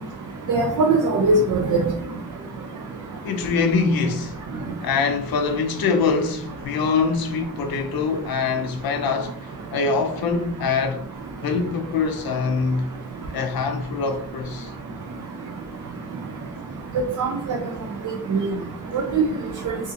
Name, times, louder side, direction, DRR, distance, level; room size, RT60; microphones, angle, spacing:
voice 1, 0.5-1.8 17.2-17.6 18.3-18.4 18.9-19.2, right 3 dB, 60° right, 0.5 m, -20 dB
voice 2, 3.2-4.4 4.8-11.1 11.4-12.9 13.3-14.7, left 4 dB, 80° left, 0.5 m, -24 dB
2.4 x 2.4 x 2.5 m
cardioid pair, 60°, 36 cm